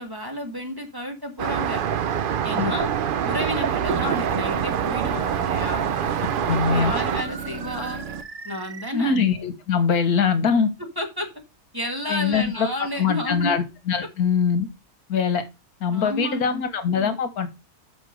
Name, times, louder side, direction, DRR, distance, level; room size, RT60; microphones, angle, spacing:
voice 1, 0.0-1.8 2.4-2.9 3.2-5.8 6.5-8.0 8.4-9.2 11.0-11.3 11.7-13.5 15.9-16.6, left 1 dB, 15° right, 1.4 m, -31 dB
Traffic noise roadway noise, 1.4-7.2, right 8 dB, 85° right, 0.4 m, -25 dB
sound 1, 3.8-8.2, right 6 dB, 60° right, 1.2 m, -36 dB
charging machine, 3.9-8.9, right 4 dB, 40° right, 0.6 m, -39 dB
voice 2, 6.5-6.9 8.9-10.7 12.1-12.7 13.0-14.7 15.1-15.4 15.8-17.5, left 6 dB, 85° left, 1.7 m, -22 dB
6.0 x 5.5 x 6.3 m
omnidirectional pair, 1.6 m